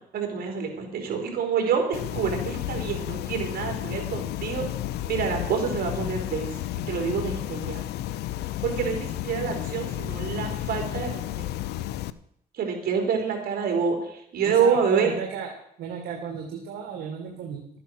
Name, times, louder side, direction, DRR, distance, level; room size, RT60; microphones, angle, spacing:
voice 1, 0.1-4.7 5.1-6.5 6.9-7.8 8.6-11.4 12.5-15.1, right 6 dB, 65° right, 2 dB, 4.1 m, -27 dB
sound 1, 1.9-12.1, left 13 dB, 90° left, 0.6 m, -32 dB
voice 2, 14.4-15.5 15.8-17.8, right 7 dB, 85° right, 2 dB, 1.9 m, -34 dB
12.5 x 10.0 x 6.5 m, 0.72 s
cardioid pair, 100°, 16 cm